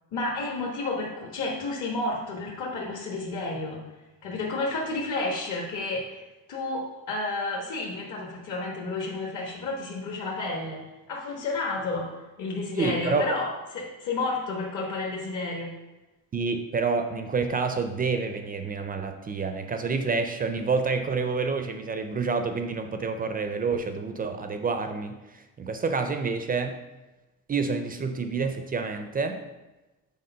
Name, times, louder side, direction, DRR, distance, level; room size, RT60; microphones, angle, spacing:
voice 1, 0.1-3.8 4.2-6.2 6.5-10.8 11.1-12.1 12.4-15.7, left 2 dB, 55° left, -2 dB, 1.3 m, -31 dB
voice 2, 12.7-13.2 16.3-26.7 27.5-29.4, right 4 dB, 25° right, 7 dB, 0.4 m, -28 dB
6.5 x 4.1 x 5.5 m, 1.1 s
cardioid pair, 165°, 35 cm